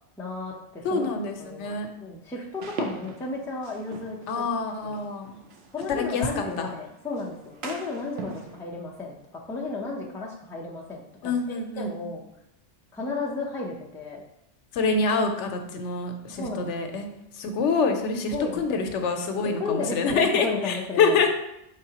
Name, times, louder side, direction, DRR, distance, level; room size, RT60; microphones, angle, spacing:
voice 1, 0.2-4.4 4.8-4.9 5.7-11.3 11.8-12.2 12.9-14.2 16.3-17.0 18.3-18.8 19.4-21.2, left 3 dB, 5° left, -3 dB, 0.3 m, -34 dB
voice 2, 0.8-1.9 4.3-5.4 5.9-6.7 11.2-12.1 14.7-17.1 17.3-21.3, left 4 dB, 85° left, 5 dB, 0.9 m, -26 dB
sound 1, 2.6-8.6, right 3 dB, 65° right, 0.8 m, -41 dB
4.7 x 3.7 x 2.8 m, 0.83 s
omnidirectional pair, 1.2 m